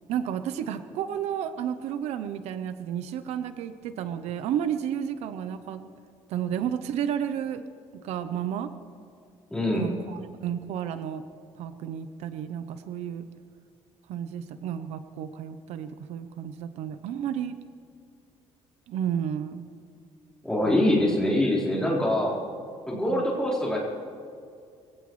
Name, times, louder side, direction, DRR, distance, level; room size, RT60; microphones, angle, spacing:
voice 1, 0.1-5.9 6.3-7.6 7.9-8.7 9.7-11.2 11.6-13.3 14.1-17.6 18.9-19.7 20.7-20.9 22.9-23.3, right 9 dB, 75° right, 11 dB, 0.8 m, -32 dB
voice 2, 9.5-9.9 20.4-22.4 22.9-23.8, left 1 dB, 5° left, -5 dB, 4.3 m, -24 dB
24.0 x 17.0 x 3.2 m, 2.4 s
cardioid pair, 145°, 11 cm